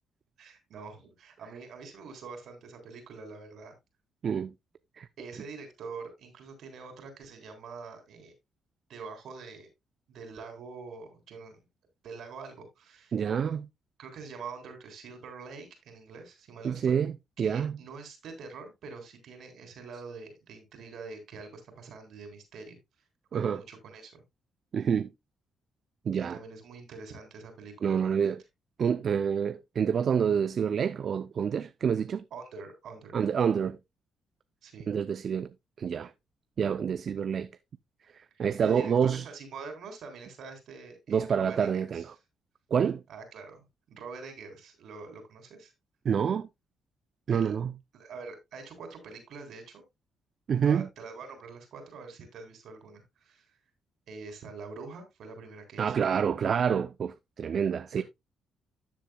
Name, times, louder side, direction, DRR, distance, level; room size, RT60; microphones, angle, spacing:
voice 1, 0.4-3.7 5.2-8.3 8.9-9.7 10.1-11.6 12.0-13.1 14.0-17.0 17.4-22.8 23.3-24.2 26.1-28.3 32.3-33.2 34.6-34.9 38.3-42.1 43.1-45.7 47.3-47.6 47.9-49.8 50.6-53.6 54.1-56.1 57.9-58.0, right 4 dB, 70° right, 3.6 m, -45 dB
voice 2, 4.2-4.5 5.0-5.1 13.1-13.7 16.6-17.8 23.3-23.6 24.7-25.1 26.1-26.4 27.8-28.4 28.8-32.2 33.1-33.8 34.9-35.5 35.8-36.1 36.6-37.5 38.1-39.3 41.1-42.1 42.7-43.0 46.0-46.5 47.3-47.7 50.5-50.9 55.8-58.0, right 7 dB, 55° right, 0.5 m, -27 dB
13.0 x 7.5 x 2.3 m
cardioid pair, 90°, 0 cm